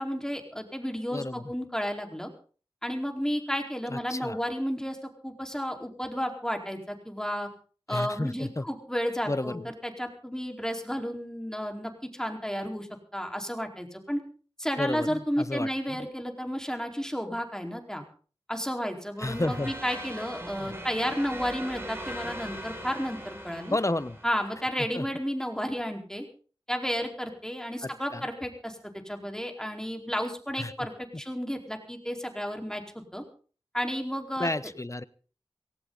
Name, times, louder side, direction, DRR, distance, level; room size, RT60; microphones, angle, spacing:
voice 1, 0.0-2.3 2.8-5.0 5.2-7.5 7.9-12.9 13.1-14.2 14.6-18.0 18.5-23.8 24.2-26.3 26.7-30.9 31.2-33.2 33.7-34.5, equal, 5° left, 3 dB, 4.4 m, -32 dB
voice 2, 1.1-1.5 3.9-4.4 7.9-8.7 9.3-9.7 14.8-16.1 19.2-19.7 20.6-20.8 23.7-24.2 24.9-25.1 27.8-28.2 30.6-30.7 34.4-35.0, left 2 dB, 30° left, 16 dB, 1.0 m, -32 dB
sound 1, 19.2-24.7, equal, 25° right, 5.8 m, -40 dB
18.5 x 18.0 x 4.1 m, 0.41 s
wide cardioid pair, 40°, 10 cm